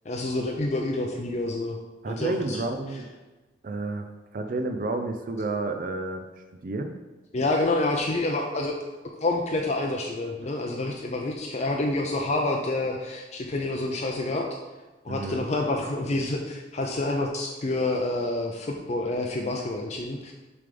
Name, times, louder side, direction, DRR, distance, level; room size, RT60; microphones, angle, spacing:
voice 1, 0.1-1.8 2.1-2.6 7.3-8.7 9.2-14.5 15.0-20.3, left 2 dB, 40° left, 1 dB, 0.5 m, -28 dB
voice 2, 2.0-3.1 3.6-4.1 4.3-6.2 6.6-7.0 15.1-15.4, right 2 dB, 50° right, 7 dB, 0.5 m, -30 dB
6.8 x 3.4 x 5.1 m, 1.2 s
head